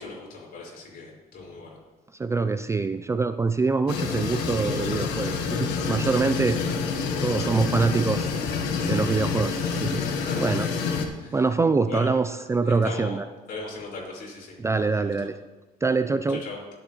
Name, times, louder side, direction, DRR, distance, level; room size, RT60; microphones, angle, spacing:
voice 1, 0.0-1.8 6.1-6.7 10.2-10.8 11.2-11.5 11.8-12.1 12.6-13.2 13.5-14.6 14.9-15.3 16.3-16.6, left 3 dB, 60° left, -3 dB, 4.7 m, -39 dB
voice 2, 2.2-6.6 7.2-8.3 8.8-10.0 10.4-10.7 11.3-13.2 14.6-15.4 15.8-16.4, right 4 dB, 15° right, 11 dB, 0.3 m, -24 dB
sound 1, 3.9-11.1, left 5 dB, 85° left, 1.3 m, -27 dB
21.5 x 7.9 x 3.0 m, 1.2 s
cardioid pair, 110°, 17 cm